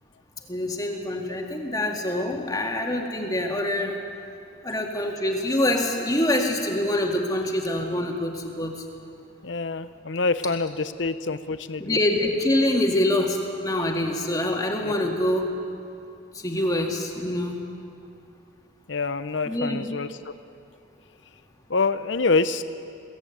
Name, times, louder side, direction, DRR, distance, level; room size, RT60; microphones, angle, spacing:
voice 1, 0.5-4.0 4.6-8.8 11.8-15.6 16.3-17.5 19.5-19.9, left 1 dB, 20° left, 1 dB, 2.1 m, -25 dB
voice 2, 9.4-12.0 14.8-15.1 18.9-20.3 21.7-22.6, left 3 dB, 65° left, 12 dB, 0.8 m, -26 dB
22.5 x 17.0 x 9.1 m, 2.6 s
head